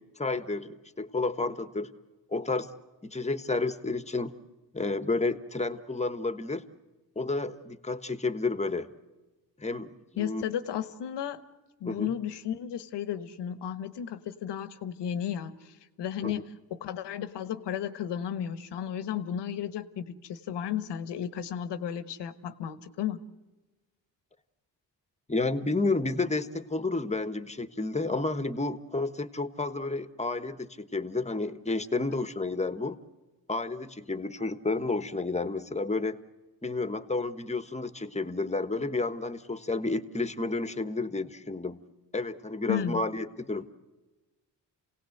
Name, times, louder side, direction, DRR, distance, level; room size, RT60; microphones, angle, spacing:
voice 1, 0.0-1.9 2.3-2.7 3.0-4.3 4.7-6.6 7.1-8.9 9.6-10.4 11.8-12.1 16.2-16.4 25.3-33.0 33.5-36.2 36.6-41.8 42.1-43.7, left 3 dB, 15° left, 12 dB, 1.3 m, -31 dB
voice 2, 10.2-11.4 11.8-23.2 42.7-43.0, left 9 dB, 80° left, 13 dB, 1.3 m, -34 dB
28.0 x 18.0 x 7.9 m, 1.2 s
cardioid pair, 80°, 41 cm